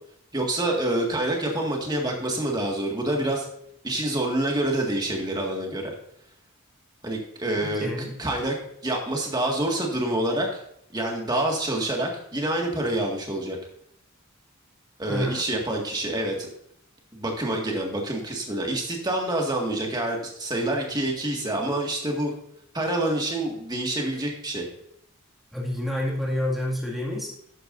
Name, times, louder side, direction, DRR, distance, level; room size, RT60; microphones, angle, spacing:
voice 1, 0.3-3.5 3.8-5.9 7.0-7.9 8.2-8.6 8.8-10.6 10.9-13.6 15.0-16.5 17.1-22.3 22.7-24.7, right 1 dB, 20° right, 0 dB, 1.8 m, -27 dB
voice 2, 7.8-8.1 15.1-15.4 25.5-27.3, left 1 dB, ahead, -3 dB, 2.1 m, -28 dB
12.5 x 8.5 x 2.6 m, 0.73 s
head